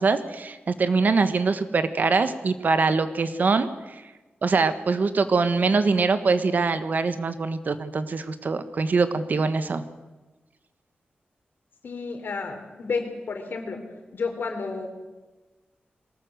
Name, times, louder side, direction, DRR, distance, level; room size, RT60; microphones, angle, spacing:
voice 1, 0.0-3.7 4.4-9.8, right 4 dB, 55° right, 11 dB, 1.4 m, -23 dB
voice 2, 11.8-13.8 14.1-14.9, left 4 dB, 70° left, 5 dB, 3.8 m, -31 dB
22.5 x 19.0 x 8.0 m, 1.2 s
wide cardioid pair, 150°, 4 cm